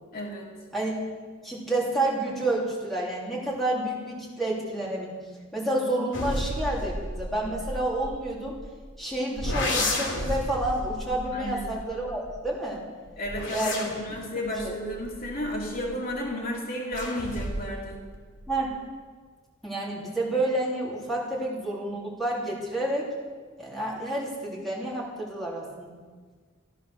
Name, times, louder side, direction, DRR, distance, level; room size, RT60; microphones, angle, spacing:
voice 1, 0.1-0.5 11.3-11.7 13.2-18.0, equal, 50° left, -2 dB, 2.6 m, -33 dB
voice 2, 1.4-5.1 5.5-8.5 9.0-12.8 13.5-13.9 14.6-14.7 18.5-18.7 19.6-23.1 23.6-26.0, right 1 dB, ahead, -5 dB, 3.7 m, -29 dB
sound 1, 6.1-8.8 9.4-12.5 13.1-16.1 16.9-17.8 18.1-18.7, left 1 dB, 70° left, 3.4 m, -33 dB
14.5 x 13.0 x 6.5 m, 1.5 s
head